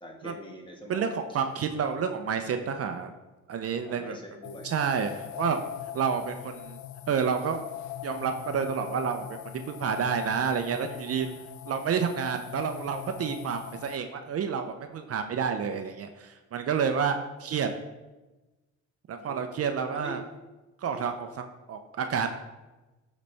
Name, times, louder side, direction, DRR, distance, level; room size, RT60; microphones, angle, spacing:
voice 1, 0.0-1.1 3.8-4.7 5.8-5.9 19.1-20.2 20.8-21.3, equal, 15° left, 0 dB, 1.5 m, -45 dB
voice 2, 0.9-3.1 3.5-4.2 4.6-5.6 5.9-6.8 7.1-7.6 8.0-11.3 11.7-17.7 19.1-20.2 20.8-22.3, right 6 dB, 50° right, 7 dB, 0.6 m, -29 dB
sound 1, 4.4-14.0, left 12 dB, 70° left, 0.5 m, -41 dB
11.5 x 4.1 x 3.3 m, 1.1 s
cardioid pair, 90°, 30 cm